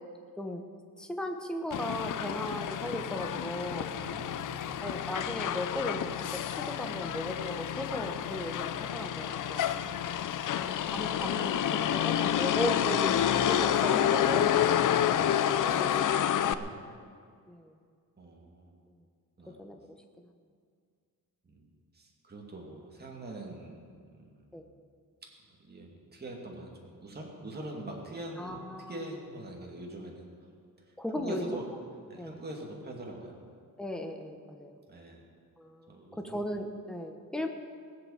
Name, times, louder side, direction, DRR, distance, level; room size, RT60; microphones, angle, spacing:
voice 1, 1.0-3.9 4.8-9.7 10.5-16.1 17.5-17.7 19.6-19.8 24.5-24.6 28.4-28.9 31.0-31.4 32.2-32.4 33.8-34.7 35.6-37.5, left 1 dB, ahead, 4 dB, 1.0 m, -36 dB
Motor vehicle (road), 1.7-16.5, left 10 dB, 65° left, 0.6 m, -29 dB
voice 2, 3.9-4.9 9.7-10.5 16.4-17.0 18.2-18.8 19.4-19.6 21.4-24.7 25.6-28.6 28.9-30.3 30.8-31.7 32.1-33.4 34.9-35.3 35.9-36.4, right 1 dB, 30° right, -1 dB, 2.4 m, -44 dB
18.5 x 8.1 x 7.3 m, 2.2 s
wide cardioid pair, 140°, 34 cm